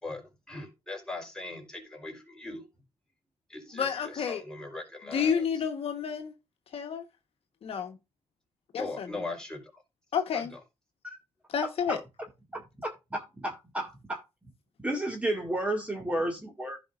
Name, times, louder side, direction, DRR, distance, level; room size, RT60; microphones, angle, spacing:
voice 1, 0.0-2.7 3.5-5.4 8.8-9.8 10.3-10.6, left 2 dB, 5° left, 4.1 m, -40 dB
voice 2, 3.7-4.4 5.1-6.3 6.7-7.0 7.6-8.0 8.7-9.2 10.1-10.5 11.5-12.0, left 7 dB, 60° left, 1.3 m, -30 dB
voice 3, 12.5-14.2 14.8-16.8, right 1 dB, 10° right, 2.1 m, -32 dB
15.0 x 5.4 x 2.5 m
wide cardioid pair, 155°, 11 cm